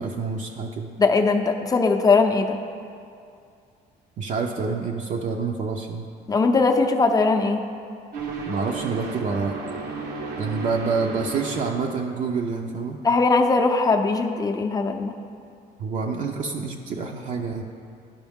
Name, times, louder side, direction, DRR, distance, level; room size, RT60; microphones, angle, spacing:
voice 1, 0.0-0.9 4.2-6.1 8.4-9.6 10.4-13.0 15.8-17.6, right 4 dB, 50° right, 1 dB, 0.6 m, -27 dB
voice 2, 1.0-2.6 6.3-7.6 13.0-15.1, left 3 dB, 20° left, 4 dB, 0.6 m, -20 dB
sound 1, 8.1-11.7, right 4 dB, 80° right, 0.9 m, -33 dB
11.5 x 5.4 x 3.6 m, 2.4 s
cardioid pair, 110°, 17 cm